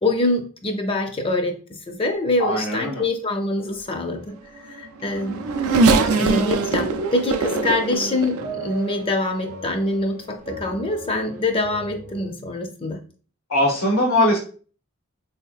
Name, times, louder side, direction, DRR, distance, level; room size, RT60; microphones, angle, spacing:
voice 1, 0.0-1.6 1.9-4.3 4.6-5.4 6.2-13.0, left 2 dB, 25° left, 4 dB, 0.4 m, -25 dB
voice 2, 2.4-3.0 5.9-6.5 13.5-14.4, left 1 dB, 85° left, -2 dB, 0.8 m, -21 dB
Race car auto racing / Accelerating revving vroom, 4.7-9.3 9.9-10.0 11.2-11.3, right 3 dB, 85° right, 0.4 m, -22 dB
sound 1, 6.4-12.3, equal, 45° right, 0.7 m, -39 dB
3.9 x 2.8 x 2.3 m, 0.40 s
head